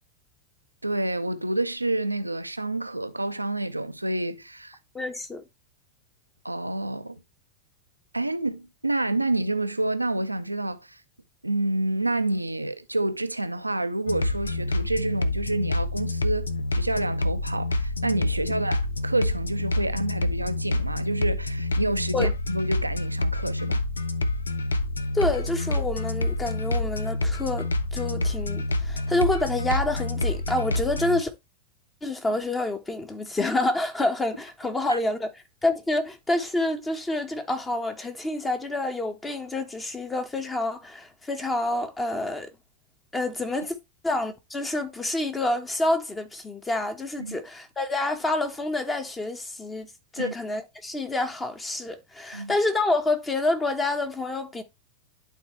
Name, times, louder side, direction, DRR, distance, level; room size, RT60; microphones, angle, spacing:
voice 1, 0.8-4.8 6.4-7.2 8.1-11.0 11.4-23.8 34.9-35.0 47.2-47.4 50.2-50.3 52.3-52.5, right 2 dB, 85° right, 0.6 m, -28 dB
voice 2, 4.9-5.5 22.1-22.3 25.1-31.3 32.0-42.5 43.1-43.8 44.0-54.6, left 2 dB, 15° left, 1.3 m, -28 dB
sound 1, 14.1-31.2, left 2 dB, 75° left, 0.6 m, -27 dB
11.5 x 4.1 x 3.2 m
figure-of-eight pair, 90°, 0 cm